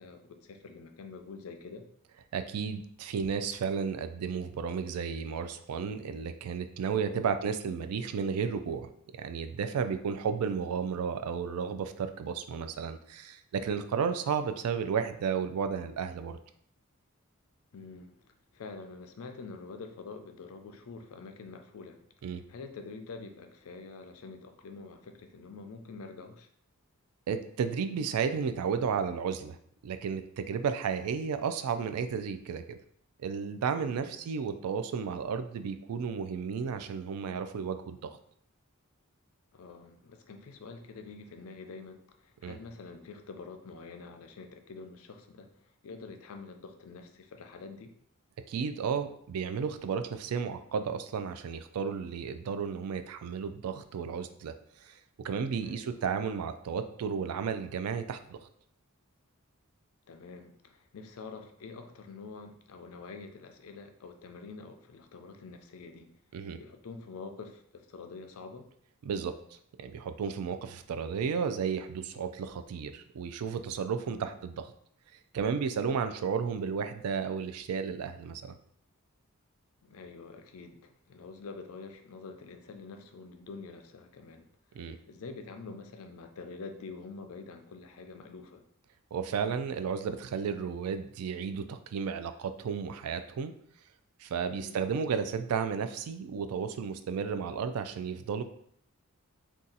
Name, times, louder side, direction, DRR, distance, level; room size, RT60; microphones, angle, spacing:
voice 1, 0.0-1.9 7.1-7.4 17.7-22.0 22.5-26.5 33.9-34.2 39.5-47.9 55.6-56.0 60.1-66.1 66.6-68.7 74.1-74.4 79.8-84.5 85.1-88.6 94.5-94.8, left 4 dB, 70° left, 6 dB, 0.4 m, -46 dB
voice 2, 2.3-8.9 9.2-16.4 22.2-22.4 27.3-29.6 29.8-32.8 33.2-38.1 42.4-42.6 48.5-54.5 54.8-55.0 55.2-58.4 66.3-66.6 69.1-69.3 69.8-74.5 75.3-78.5 84.8-85.0 89.1-93.5 94.2-98.4, right 6 dB, 85° right, 9 dB, 0.3 m, -33 dB
2.7 x 2.3 x 3.8 m, 0.67 s
head